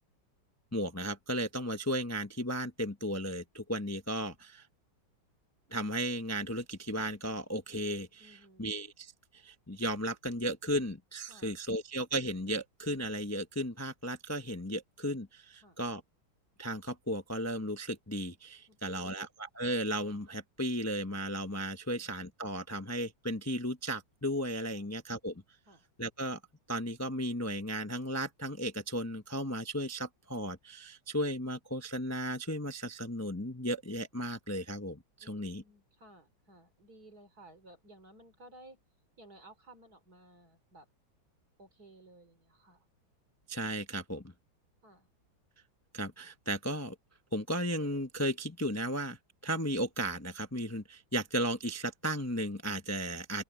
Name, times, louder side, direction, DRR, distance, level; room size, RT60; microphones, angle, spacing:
voice 1, 0.7-4.7 5.7-16.0 16.6-25.4 26.0-26.4 26.7-35.6 43.5-44.3 45.9-46.9 47.3-49.2 49.4-53.4, equal, 15° left, 0.6 m, -35 dB
voice 2, 8.2-8.7 11.3-11.8 15.6-15.8 18.7-19.2 21.9-22.1 24.7-24.9 25.7-25.8 35.2-38.8 39.2-40.9 41.6-42.9 44.8-45.1, right 2 dB, 50° right, 4.0 m, -57 dB
open air
omnidirectional pair, 2.1 m